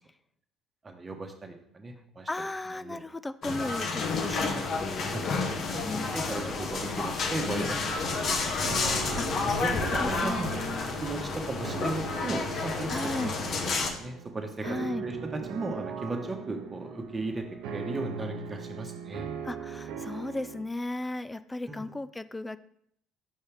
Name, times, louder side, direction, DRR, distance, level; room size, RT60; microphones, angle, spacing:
voice 1, 0.8-2.3 2.8-3.0 5.1-5.8 6.1-8.4 9.4-9.7 10.1-10.5 11.0-13.3 13.9-14.7 15.0-19.3 21.7-21.8, right 2 dB, 25° right, 3 dB, 1.1 m, -36 dB
voice 2, 2.3-6.1 9.2-10.9 12.9-13.3 14.6-15.1 19.4-22.6, left 2 dB, 15° left, 14 dB, 0.3 m, -36 dB
sound 1, 3.4-13.9, left 3 dB, 55° left, 0.9 m, -30 dB
sound 2, 8.6-20.6, right 6 dB, 75° right, 0.6 m, -40 dB
5.5 x 5.4 x 3.4 m, 0.69 s
hypercardioid pair, 70°, 0 cm